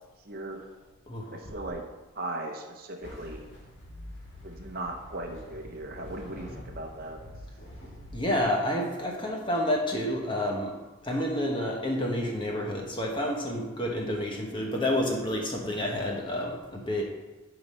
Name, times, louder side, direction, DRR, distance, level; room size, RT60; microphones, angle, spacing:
voice 1, 0.3-0.6 1.3-1.8 2.1-3.4 4.4-7.2, right 2 dB, 45° right, 3 dB, 0.9 m, -38 dB
voice 2, 1.1-1.5 8.1-10.7 11.0-17.0, left 1 dB, 25° left, -1 dB, 1.2 m, -29 dB
sound 1, 3.0-8.2, equal, 60° left, 2.3 m, -45 dB
10.5 x 4.0 x 5.5 m, 1.2 s
head